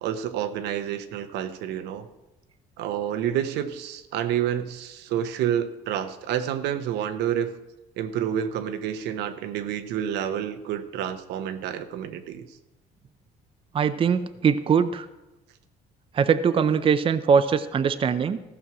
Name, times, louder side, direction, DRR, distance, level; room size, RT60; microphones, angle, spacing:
voice 1, 0.0-2.1 2.8-7.6 8.0-12.5, right 10 dB, 85° right, 9 dB, 0.8 m, -29 dB
voice 2, 13.7-15.1 16.1-18.4, right 6 dB, 30° right, 11 dB, 0.5 m, -22 dB
14.5 x 6.2 x 6.1 m, 1.0 s
cardioid pair, 110°, 17 cm